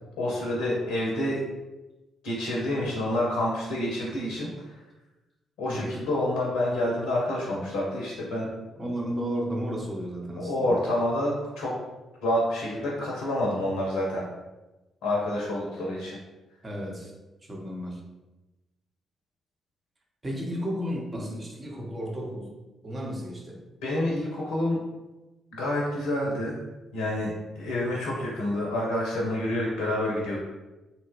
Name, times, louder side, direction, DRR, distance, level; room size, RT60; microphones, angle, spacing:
voice 1, 0.2-1.4 2.2-4.8 5.6-8.5 10.4-11.7 12.2-14.2 15.0-16.2 23.8-24.8 25.5-26.6 26.9-30.4, left 1 dB, 75° left, -3 dB, 0.5 m, -28 dB
voice 2, 8.8-10.8 16.6-17.1 17.5-18.0 20.2-22.6 22.8-23.6, equal, 35° right, -1 dB, 0.8 m, -33 dB
2.9 x 2.1 x 3.0 m, 1.1 s
hypercardioid pair, 40°, 0 cm